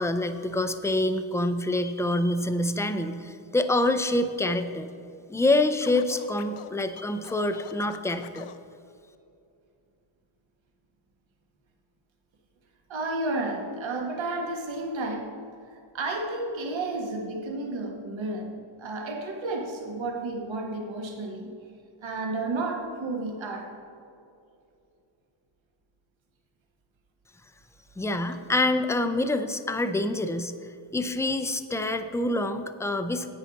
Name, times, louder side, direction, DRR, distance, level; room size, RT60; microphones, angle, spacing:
voice 1, 0.0-4.9 5.3-8.5 28.0-30.5 30.9-33.3, left 2 dB, 5° left, 9 dB, 0.4 m, -26 dB
Scratching (performance technique), 5.8-8.6, left 10 dB, 85° left, 0.6 m, -45 dB
voice 2, 12.9-15.3 15.9-18.5 18.8-21.5 22.0-23.7, right 2 dB, 65° right, 1 dB, 1.5 m, -31 dB
10.5 x 8.7 x 4.1 m, 2.5 s
wide cardioid pair, 110°, 50 cm